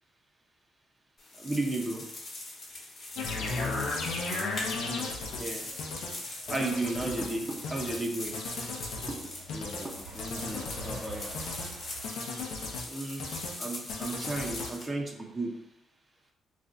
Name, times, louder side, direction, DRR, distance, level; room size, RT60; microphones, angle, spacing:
sound 1, 1.2-14.9, left 2 dB, 45° left, 1.0 m, -42 dB
voice 1, 1.4-2.0 5.4-5.6 6.5-8.4 9.1-9.3 9.8-9.9 12.9-13.3 13.6-15.5, right 2 dB, 25° right, 1 dB, 0.6 m, -33 dB
sound 2, 3.2-5.4 5.8-6.1 6.5-7.3 7.6-8.0 8.3-9.2 9.5-9.8 10.2-11.0 11.3-11.7 12.0-12.9 13.2-13.6 13.9-14.7, left 3 dB, 85° left, 0.5 m, -35 dB
voice 2, 3.3-4.0 9.5-11.4, left 1 dB, 20° left, 1 dB, 0.4 m, -41 dB
Truck, 4.5-12.0, right 3 dB, 70° right, 0.9 m, -49 dB
2.5 x 2.2 x 3.6 m, 0.83 s
cardioid pair, 90°, 0 cm